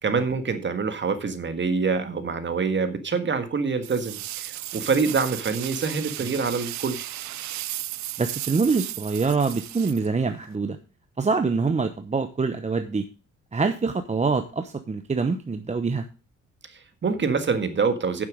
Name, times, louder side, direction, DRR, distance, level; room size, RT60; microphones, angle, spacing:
voice 1, 0.0-7.1 16.7-18.2, right 5 dB, 40° right, 9 dB, 1.7 m, -26 dB
sound 1, 3.8-10.5, right 15 dB, 65° right, 0.5 m, -35 dB
voice 2, 8.2-10.8 11.2-13.1 13.5-16.0, right 4 dB, 25° right, 8 dB, 0.9 m, -25 dB
9.4 x 7.4 x 5.1 m, 0.33 s
cardioid pair, 90°, 30 cm